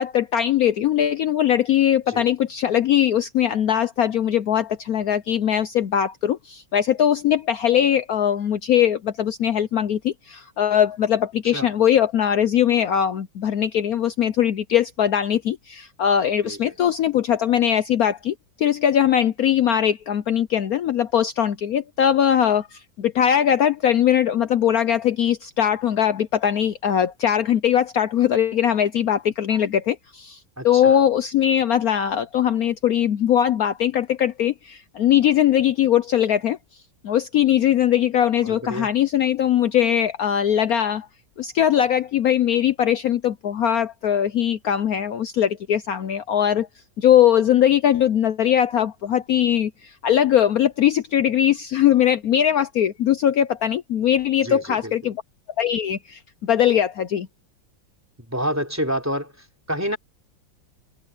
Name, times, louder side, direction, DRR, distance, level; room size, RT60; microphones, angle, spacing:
voice 1, 0.0-30.4 30.6-36.6 37.0-41.1 41.4-46.7 47.0-55.2 55.6-57.3, left 10 dB, 65° left, 0.9 m, -20 dB
voice 2, 16.4-16.8 30.6-31.0 38.4-38.9 54.4-55.1 58.3-60.0, equal, 5° right, 3.5 m, -29 dB
omnidirectional pair, 2.1 m